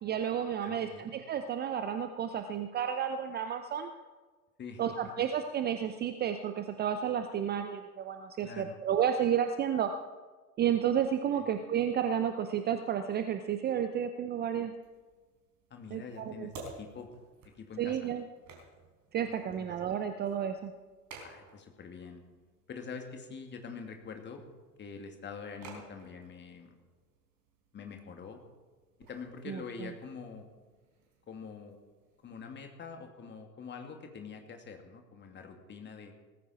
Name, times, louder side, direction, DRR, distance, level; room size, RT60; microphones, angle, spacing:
voice 1, 0.0-3.9 4.8-9.9 10.6-14.7 15.9-16.5 17.8-18.2 19.1-20.7 29.5-29.9, right 9 dB, 20° right, 8 dB, 0.7 m, -31 dB
voice 2, 0.6-1.1 4.6-4.8 8.4-8.8 11.4-11.5 15.7-16.5 16.8-17.1 17.4-18.0 19.5-19.8 21.2-22.2 22.7-24.4 24.8-26.7 27.7-28.4 29.1-30.5 31.3-31.8 32.2-36.1, left 5 dB, 20° left, 4 dB, 2.4 m, -45 dB
sound 1, 14.8-32.4, right 3 dB, 35° right, 4.6 m, -55 dB
18.5 x 14.5 x 4.3 m, 1.3 s
figure-of-eight pair, 90°, 48 cm